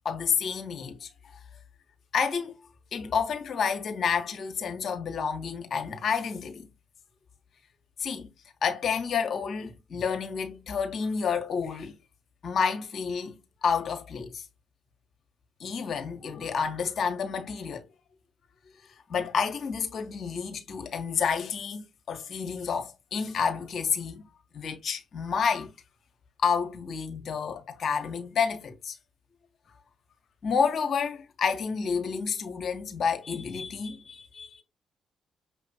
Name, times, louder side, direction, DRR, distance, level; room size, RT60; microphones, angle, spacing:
voice 1, 0.0-1.1 2.1-2.5 2.9-6.6 8.0-8.3 8.6-11.9 12.4-13.3 13.6-14.4 15.6-17.9 19.1-24.2 24.5-25.7 26.4-29.0 30.4-34.6, left 6 dB, 60° left, 1.3 m, -29 dB
6.1 x 2.9 x 2.8 m
hypercardioid pair, 40°, 0 cm